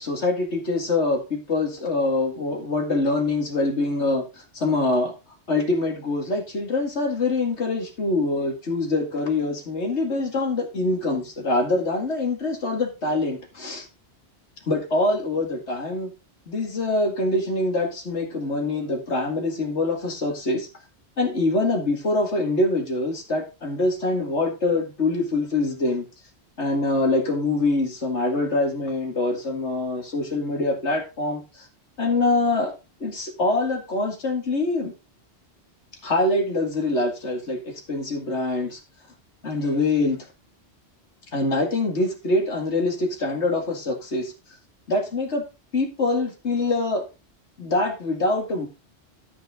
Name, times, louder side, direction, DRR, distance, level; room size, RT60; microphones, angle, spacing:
voice 1, 0.0-5.1 5.5-13.9 14.7-16.1 16.5-20.7 21.2-26.0 26.6-31.7 32.0-32.7 33.0-34.9 36.0-38.8 39.4-40.2 41.3-44.3 44.9-45.4 45.7-47.0 47.6-48.7, left 2 dB, 75° left, 2 dB, 2.5 m, -24 dB
12.5 x 5.7 x 3.7 m, 0.30 s
omnidirectional pair, 1.2 m